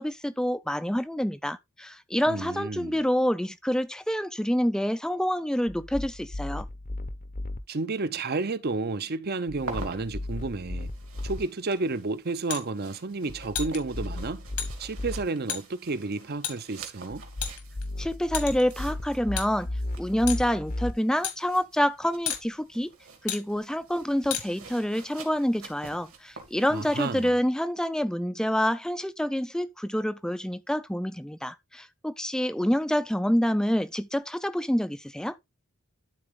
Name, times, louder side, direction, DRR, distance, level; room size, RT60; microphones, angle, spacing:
voice 1, 0.0-6.7 18.0-19.7 20.0-22.9 23.2-35.3, equal, 5° left, 0.4 m, -27 dB
voice 2, 2.3-3.0 7.7-10.9 11.2-14.5 14.8-17.2 26.7-27.3, right 3 dB, 45° right, 0.7 m, -31 dB
sound 1, 5.7-7.6 9.5-11.4 13.3-15.2 17.1-20.9, left 1 dB, 35° left, 0.7 m, -35 dB
sound 2, 9.6-27.3, right 4 dB, 65° right, 2.6 m, -48 dB
sound 3, 12.5-12.6 13.5-13.8 14.6-14.7 15.5-15.6 16.4-16.6 17.4-17.8 18.3-18.7 19.4-19.5 20.3-20.5 21.2-21.4 22.3-22.4 23.3-23.4 24.3-24.4, left 9 dB, 85° left, 1.9 m, -31 dB
12.0 x 4.1 x 3.6 m
head